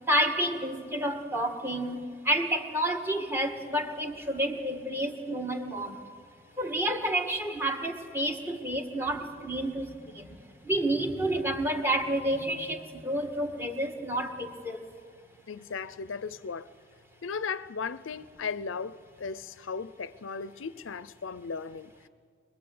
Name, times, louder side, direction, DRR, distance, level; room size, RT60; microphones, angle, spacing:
voice 1, 0.1-6.0 6.6-10.3 10.6-14.8, right 1 dB, 15° right, 1.6 m, -30 dB
voice 2, 15.5-16.7 17.2-22.1, left 5 dB, 90° left, 0.6 m, -36 dB
24.5 x 21.5 x 7.8 m
head